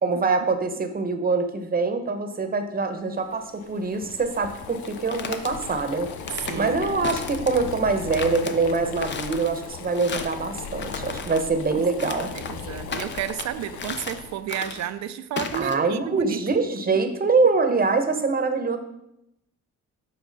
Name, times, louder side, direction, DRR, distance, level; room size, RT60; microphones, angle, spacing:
voice 1, 0.0-6.1 6.5-12.3 15.5-18.8, right 4 dB, 30° right, 7 dB, 0.9 m, -24 dB
Boiling, 3.2-14.5, left 6 dB, 75° left, 0.7 m, -38 dB
sound 1, 4.8-5.5 6.1-6.6 7.0-7.7 8.1-8.5 9.0-9.5 9.9-10.4 10.8-11.4 12.0-12.6 12.9-13.5 13.8-14.2 14.5-14.9 15.4-15.7, left 5 dB, 35° left, 0.7 m, -34 dB
voice 2, 6.5-6.8 11.3-11.5 12.0-16.4, right 11 dB, 65° right, 12 dB, 0.6 m, -32 dB
7.3 x 4.8 x 4.0 m, 0.82 s
cardioid pair, 90°, 30 cm